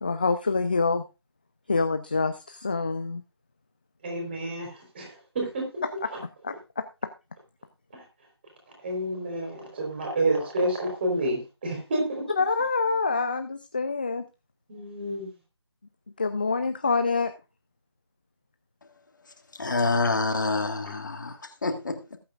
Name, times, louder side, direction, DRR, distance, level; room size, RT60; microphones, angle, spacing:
voice 1, 0.0-1.0 1.7-3.2 6.4-6.5 12.4-14.2 16.2-17.3, left 4 dB, 20° left, 9 dB, 0.5 m, -26 dB
voice 2, 4.0-5.8 6.1-6.2 7.9-8.0 8.8-12.2 14.7-15.3, right 1 dB, 25° right, 1 dB, 4.1 m, -29 dB
voice 3, 19.6-22.2, left 3 dB, 45° left, 6 dB, 1.7 m, -27 dB
19.5 x 8.6 x 2.5 m, 0.28 s
figure-of-eight pair, 160°, 14 cm